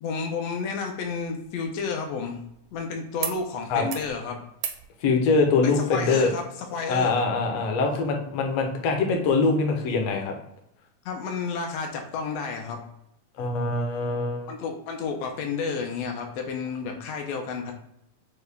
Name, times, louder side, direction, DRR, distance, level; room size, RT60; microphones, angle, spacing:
voice 1, 0.0-2.4 2.7-4.4 5.6-7.2 11.0-12.8 14.5-17.7, left 5 dB, 85° left, 2 dB, 1.4 m, -31 dB
sound 1, 1.0-2.8 3.2-3.4 3.7-4.1 4.5-4.9 6.2-6.3, right 9 dB, 85° right, 1.5 m, -37 dB
voice 2, 5.0-6.3 6.9-10.3 13.4-14.5, left 4 dB, 70° left, 2 dB, 1.6 m, -23 dB
6.3 x 2.3 x 3.3 m, 0.79 s
omnidirectional pair, 3.5 m